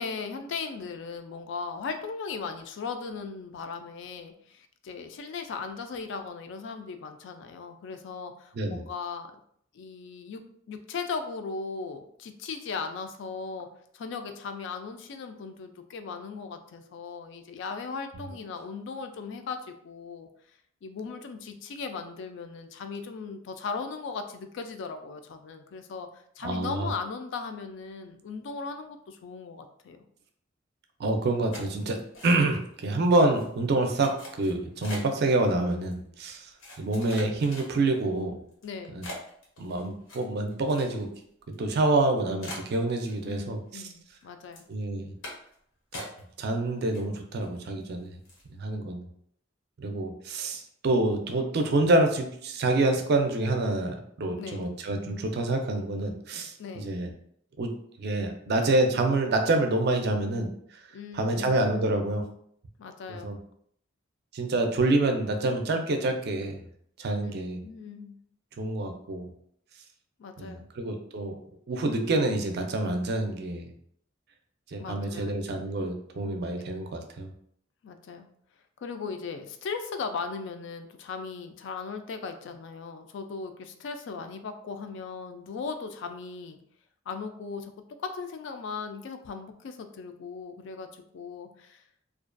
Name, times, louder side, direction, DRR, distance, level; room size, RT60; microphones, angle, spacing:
voice 1, 0.0-9.3 9.7-10.4 10.7-13.7 13.9-20.3 20.8-30.0 38.6-39.0 43.2-44.6 54.4-54.6 56.6-56.9 60.9-61.8 62.8-63.3 67.2-67.3 67.6-68.2 70.2-70.7 74.8-75.6 77.8-78.3 78.8-86.6 87.1-87.7 88.0-91.8, left 5 dB, 65° left, 7 dB, 0.3 m, -38 dB
voice 2, 26.4-26.9 31.0-36.5 36.8-38.3 38.9-39.1 39.6-41.1 41.6-43.8 44.7-45.1 46.4-48.1 48.6-49.0 49.8-57.1 57.6-57.7 58.0-60.8 61.1-62.2 63.2-63.4 64.3-66.6 67.0-67.6 68.6-69.3 70.4-71.4 71.7-73.7 74.7-77.3, right 2 dB, 55° right, 4 dB, 0.4 m, -27 dB
sound 1, 31.5-32.7 33.0-33.5 34.0-35.2 35.9-36.0 36.6-38.0 38.5-38.6 39.0-41.2 41.5-41.6 42.0-42.1 42.4-43.5 43.8-44.2 44.5-44.7 45.2-45.5 45.9-46.5 46.8-47.4 47.8-47.9 48.2-48.5, left 1 dB, 85° left, 0.8 m, -43 dB
2.4 x 2.2 x 2.4 m, 0.66 s
head